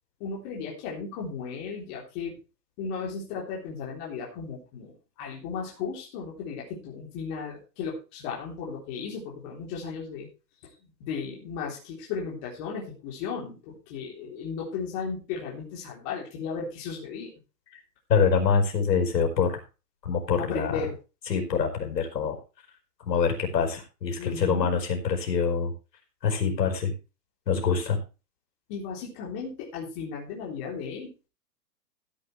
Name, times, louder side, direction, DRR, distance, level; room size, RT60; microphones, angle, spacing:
voice 1, 0.2-2.4 2.8-10.3 10.6-17.3 20.4-20.9 24.2-24.7 28.7-31.1, left 5 dB, 25° left, -2 dB, 3.6 m, -35 dB
voice 2, 18.1-19.6 20.0-20.8 21.3-22.4 23.1-25.7 26.2-26.9 27.5-28.0, left 6 dB, 80° left, 3 dB, 5.1 m, -25 dB
16.0 x 8.7 x 3.3 m, 0.31 s
hypercardioid pair, 170°, 49 cm